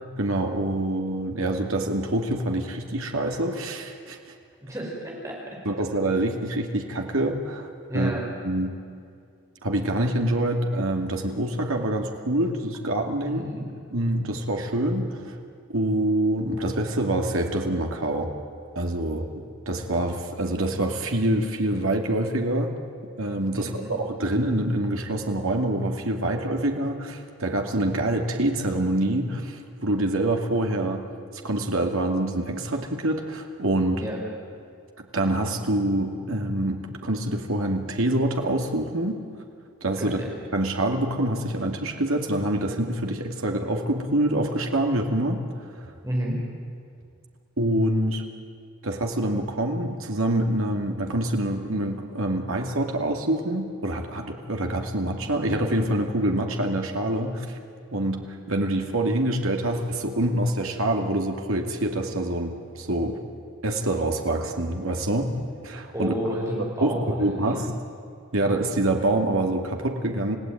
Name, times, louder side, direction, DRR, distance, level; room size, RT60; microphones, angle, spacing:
voice 1, 0.2-4.2 5.6-7.7 7.9-8.1 8.4-8.7 9.6-13.5 13.9-15.4 15.7-18.3 18.8-22.7 23.2-31.0 31.4-34.0 35.1-39.2 39.8-40.2 40.5-45.4 47.6-48.2 48.8-57.5 57.9-63.2 63.6-65.3 65.6-66.1 66.6-67.7 68.3-70.4, right 1 dB, 85° right, 3 dB, 2.4 m, -26 dB
voice 2, 4.6-5.6 7.9-8.2 13.2-13.6 23.5-23.9 34.0-34.2 40.0-40.3 46.0-46.4 65.9-67.6, equal, 15° right, -2 dB, 5.3 m, -31 dB
29.0 x 16.0 x 9.3 m, 2.4 s
head